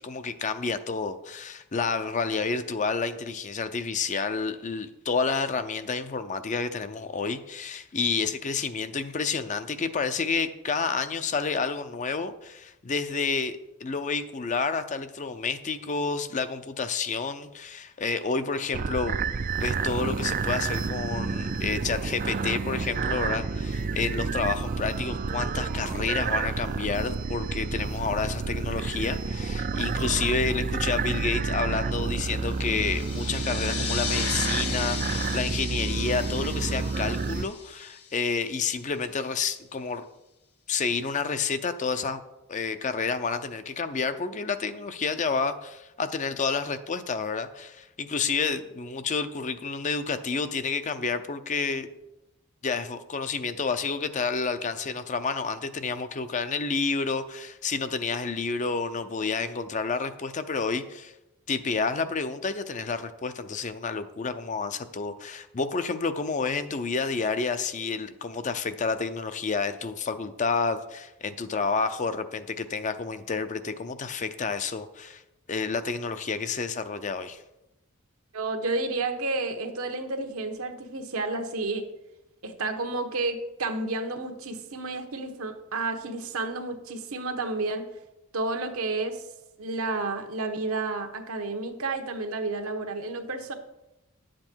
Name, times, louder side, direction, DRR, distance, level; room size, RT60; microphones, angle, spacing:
voice 1, 0.0-19.2 19.6-40.0 40.7-42.2 42.5-51.9 52.6-61.1 61.5-75.2 75.5-77.4, left 4 dB, 35° left, 10 dB, 0.5 m, -30 dB
sound 1, 18.7-37.5, right 4 dB, 40° right, 0.4 m, -29 dB
sound 2, 32.3-38.6, left 7 dB, 90° left, 1.3 m, -36 dB
voice 2, 78.3-81.9 82.4-87.9 88.3-89.2 89.6-93.5, right 3 dB, 75° right, 5 dB, 1.1 m, -31 dB
10.5 x 7.6 x 4.5 m, 0.93 s
head